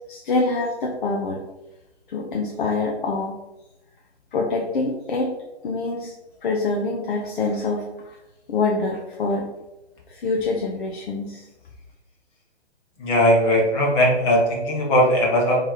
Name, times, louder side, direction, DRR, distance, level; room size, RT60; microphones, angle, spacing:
voice 1, 0.1-1.4 2.1-3.4 4.3-5.3 5.6-6.1 6.4-8.1 8.5-9.5 10.1-11.4, left 3 dB, 50° left, -1 dB, 0.7 m, -25 dB
voice 2, 13.0-15.6, equal, 15° left, -2 dB, 0.6 m, -19 dB
3.7 x 3.3 x 4.4 m, 0.95 s
hypercardioid pair, 150°, 34 cm